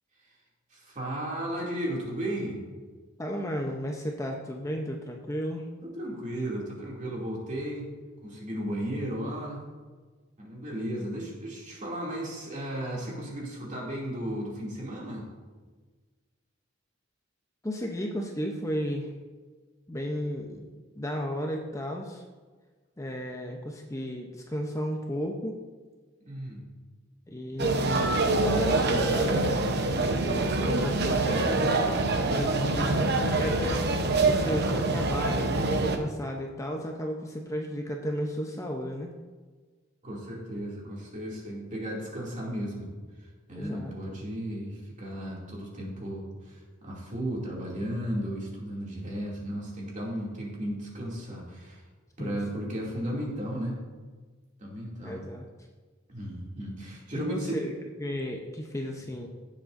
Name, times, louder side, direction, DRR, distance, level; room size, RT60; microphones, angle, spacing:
voice 1, 0.7-2.6 5.8-7.9 8.2-9.7 10.4-15.3 26.2-26.7 40.0-42.9 43.5-51.8 52.2-53.8 54.6-55.3 56.1-57.6, right 1 dB, 40° right, -3 dB, 2.6 m, -35 dB
voice 2, 3.2-5.7 17.6-19.1 19.9-20.6 20.9-22.2 23.0-25.6 27.3-31.7 32.3-39.1 43.6-43.9 52.2-52.4 55.0-55.4 57.1-59.3, equal, 15° left, 1 dB, 0.7 m, -34 dB
sound 1, 27.6-36.0, right 2 dB, 55° right, 0.9 m, -25 dB
16.5 x 7.4 x 2.6 m, 1.4 s
head